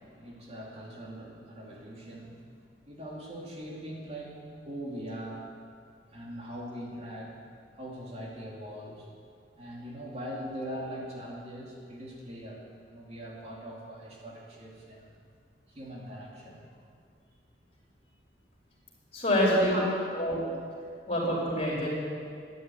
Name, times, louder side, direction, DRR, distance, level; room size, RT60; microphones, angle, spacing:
voice 1, 0.0-2.5 2.8-5.4 6.1-7.4 7.7-9.1 9.6-15.1 15.7-16.7 19.5-19.9, equal, 40° right, -3 dB, 2.8 m, -41 dB
voice 2, 19.1-19.8 20.1-20.5 21.1-21.9, equal, 35° left, -5 dB, 5.0 m, -26 dB
13.0 x 11.0 x 9.3 m, 2.3 s
head